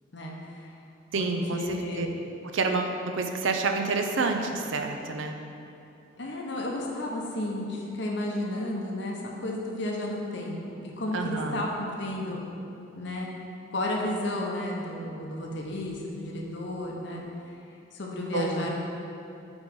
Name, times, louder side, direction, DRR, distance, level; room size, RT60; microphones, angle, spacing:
voice 1, 0.1-0.7 1.2-2.1 6.2-12.4 13.0-13.3 13.7-17.2 17.9-18.7, left 1 dB, 60° left, -1 dB, 0.7 m, -32 dB
voice 2, 1.1-2.1 2.4-5.4 11.1-11.6 18.3-18.7, right 3 dB, 70° right, 5 dB, 0.5 m, -28 dB
5.2 x 4.7 x 5.2 m, 2.8 s
head